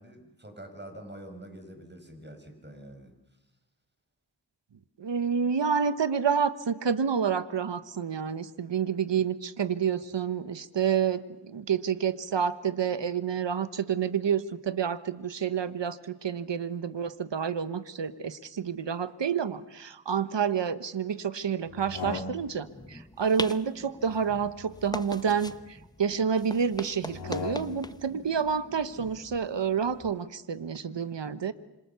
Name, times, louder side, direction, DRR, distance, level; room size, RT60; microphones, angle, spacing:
voice 1, 0.0-3.1, right 1 dB, 25° right, 6 dB, 5.9 m, -46 dB
voice 2, 5.0-31.5, right 7 dB, 85° right, 13 dB, 1.2 m, -29 dB
sound 1, 21.7-22.8 24.0-25.7 27.0-28.0, left 5 dB, 80° left, 1.9 m, -40 dB
sound 2, 22.6-30.2, left 1 dB, 10° left, 0.9 m, -42 dB
26.5 x 26.5 x 7.0 m, 0.94 s
cardioid pair, 45°, 42 cm